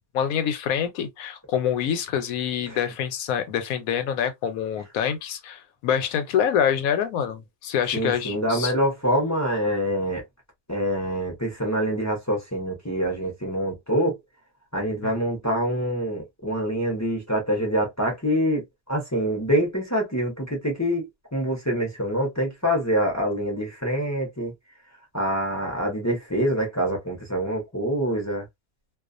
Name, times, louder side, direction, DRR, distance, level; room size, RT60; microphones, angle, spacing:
voice 1, 0.1-8.7 15.0-15.2, left 8 dB, 75° left, 1.0 m, -26 dB
voice 2, 7.9-10.2 10.7-14.2 14.7-18.6 18.9-24.5 25.1-28.4, equal, 20° left, 0.5 m, -25 dB
2.3 x 2.3 x 2.4 m
omnidirectional pair, 1.6 m